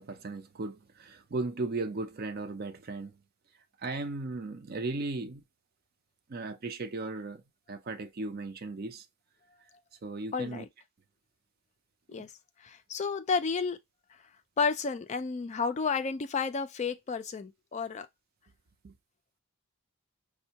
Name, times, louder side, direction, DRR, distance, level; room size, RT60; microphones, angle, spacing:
voice 1, 0.0-3.1 3.8-5.4 6.3-7.4 7.7-9.0 10.0-10.7 12.1-12.3 18.8-18.9, right 3 dB, 45° right, 0.5 m, -36 dB
voice 2, 10.3-10.7 12.1-12.3 12.6-13.8 14.6-18.1, left 5 dB, 35° left, 0.3 m, -31 dB
5.3 x 2.2 x 2.7 m
head